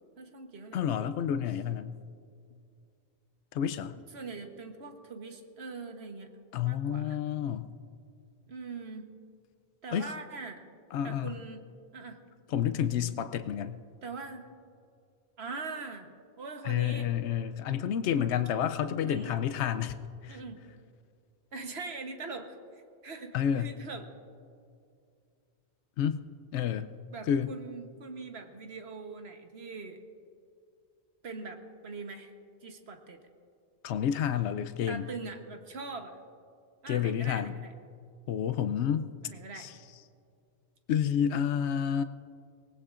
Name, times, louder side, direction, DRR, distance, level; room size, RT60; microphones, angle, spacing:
voice 1, 0.2-1.1 4.1-6.3 6.6-7.2 8.5-9.1 9.8-10.6 11.0-11.7 11.9-12.2 14.0-14.4 15.4-16.1 16.4-17.1 19.1-19.4 20.3-20.6 21.5-22.6 23.0-24.1 27.1-30.0 31.2-32.3 32.6-33.2 34.9-36.2 36.8-37.7 39.2-39.7, right 4 dB, 70° right, 5 dB, 1.4 m, -42 dB
voice 2, 0.7-1.9 3.5-4.0 6.5-7.7 9.9-10.1 10.9-11.4 12.5-13.8 16.6-20.4 23.3-23.7 26.0-26.2 26.5-26.9 27.3-27.5 33.8-35.1 36.9-37.5 38.3-39.1 39.6-39.7 40.9-42.0, left 9 dB, 85° left, 11 dB, 0.9 m, -30 dB
23.5 x 18.5 x 2.5 m, 2.4 s
omnidirectional pair, 1.1 m